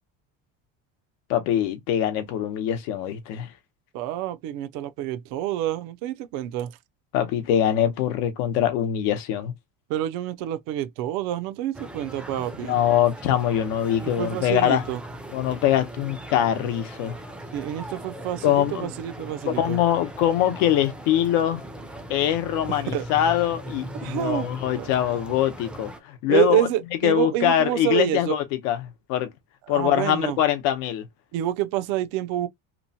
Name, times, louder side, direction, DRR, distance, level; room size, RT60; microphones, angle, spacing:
voice 1, 1.3-3.5 7.1-9.5 12.6-14.8 15.3-17.2 18.4-18.9 19.5-21.6 22.1-26.7 27.0-29.3 29.7-31.1, left 11 dB, 85° left, 0.8 m, -23 dB
voice 2, 3.9-6.7 9.9-12.8 14.0-15.0 17.5-19.8 22.7-23.1 23.9-24.9 26.3-28.4 29.7-30.4 31.3-32.5, right 13 dB, 80° right, 0.5 m, -27 dB
sound 1, 11.7-26.0, right 1 dB, 5° right, 0.4 m, -39 dB
3.0 x 2.0 x 2.7 m
cardioid pair, 130°, 33 cm